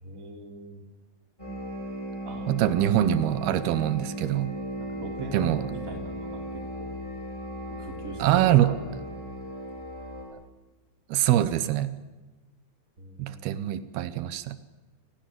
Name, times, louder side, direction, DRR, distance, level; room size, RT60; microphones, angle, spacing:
voice 1, 0.0-0.8 2.2-2.9 4.8-6.9 7.7-8.8 13.0-13.6, right 3 dB, 20° right, 4 dB, 3.6 m, -41 dB
sound 1, 1.4-10.2, equal, 5° left, 6.7 m, -36 dB
voice 2, 2.5-4.5 5.3-5.6 8.2-8.7 11.1-11.9 13.2-14.6, right 13 dB, 85° right, 14 dB, 2.9 m, -24 dB
28.0 x 20.5 x 7.7 m, 1.2 s
omnidirectional pair, 4.3 m